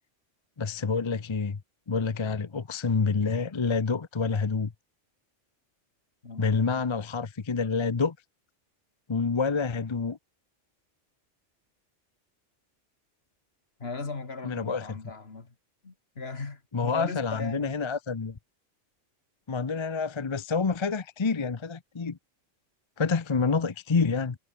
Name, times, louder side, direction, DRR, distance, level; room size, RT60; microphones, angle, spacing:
voice 1, 0.6-1.6 1.9-4.7 6.4-8.2 9.1-10.2 14.4-14.9 16.7-18.4 19.5-22.2 23.0-24.4, left 5 dB, 30° left, 0.7 m, -28 dB
voice 2, 6.2-6.8 13.8-15.5 15.8-17.7, left 4 dB, 55° left, 2.5 m, -38 dB
omnidirectional pair, 1.3 m